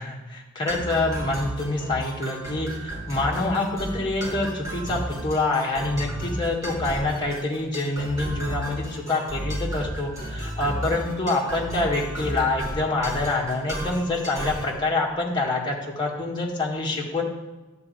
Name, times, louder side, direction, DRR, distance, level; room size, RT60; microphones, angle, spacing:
voice 1, 0.0-17.2, left 2 dB, 25° left, -3 dB, 1.8 m, -26 dB
sound 1, 0.7-14.7, right 1 dB, 15° right, 2.5 m, -33 dB
11.0 x 4.1 x 7.8 m, 1.2 s
head